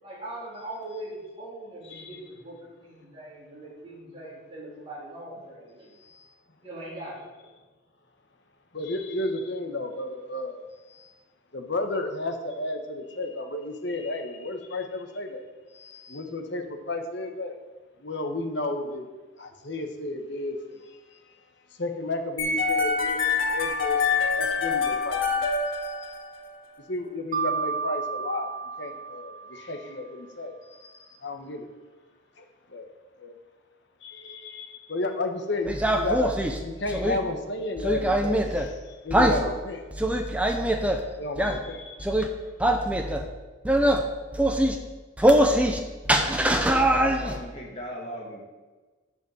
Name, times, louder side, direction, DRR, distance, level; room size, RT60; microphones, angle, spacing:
voice 1, 0.0-5.9 6.6-7.3, right 1 dB, 30° right, -6 dB, 3.6 m, -41 dB
voice 2, 8.7-10.6 10.9-11.1 11.5-15.5 15.7-17.6 18.0-19.1 19.4-20.8 21.8-25.5 25.7-26.1 26.9-28.5 28.8-31.7 32.4-32.5 32.7-32.9 33.2-33.4 34.0-36.3 36.6-39.8 40.8-42.3, left 2 dB, 60° left, 5 dB, 1.2 m, -33 dB
sound 1, 22.4-26.5, left 4 dB, 85° left, 1.5 m, -25 dB
Mallet percussion, 27.3-30.1, right 5 dB, 45° right, 0.4 m, -32 dB
sound 2, 35.7-37.2 37.8-38.7 39.1-39.4 39.9-41.0 41.4-41.6 42.0-42.3 42.6-43.3 43.7-44.0 44.3-44.8 45.2-45.8 46.1-47.4, right 1 dB, 5° right, 0.7 m, -23 dB
voice 3, 47.0-48.4, equal, 30° left, -3 dB, 2.5 m, -38 dB
11.0 x 5.2 x 6.9 m, 1.3 s
head